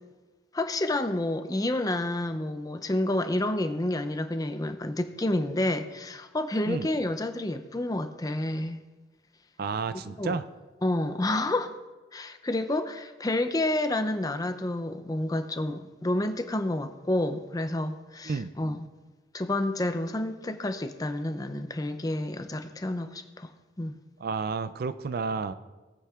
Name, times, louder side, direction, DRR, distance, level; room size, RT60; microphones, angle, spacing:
voice 1, 0.5-8.8 10.2-10.4 10.8-11.7 12.1-18.9 19.3-23.5 23.8-24.0, left 1 dB, 20° left, 0.5 m, -29 dB
voice 2, 9.6-10.5 18.3-18.5 24.2-25.5, right 4 dB, 50° right, 0.4 m, -31 dB
19.0 x 8.5 x 2.4 m
head